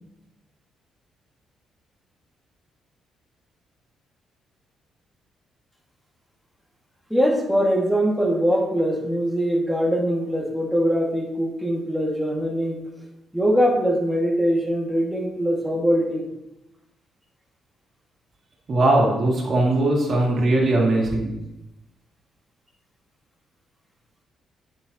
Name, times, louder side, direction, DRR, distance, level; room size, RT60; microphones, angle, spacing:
voice 1, 7.1-12.8 13.3-16.3, equal, 5° right, -2 dB, 2.1 m, -22 dB
voice 2, 18.7-21.3, right 2 dB, 50° right, -2 dB, 2.5 m, -20 dB
8.7 x 6.1 x 2.9 m, 0.93 s
supercardioid pair, 70°, 0 cm